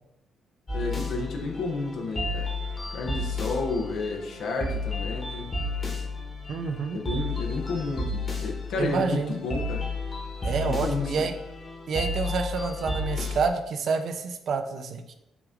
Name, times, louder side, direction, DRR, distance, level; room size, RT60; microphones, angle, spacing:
voice 1, 0.7-2.5 2.9-5.6 6.9-9.8 10.6-11.3, left 3 dB, 75° left, 1 dB, 0.7 m, -31 dB
sound 1, 0.7-13.5, left 2 dB, 30° left, 1.3 m, -32 dB
voice 2, 6.5-7.0 8.8-9.3 10.4-11.3 11.9-15.1, right 5 dB, 60° right, 7 dB, 0.5 m, -28 dB
5.9 x 2.5 x 3.6 m, 0.87 s
cardioid pair, 90°, 0 cm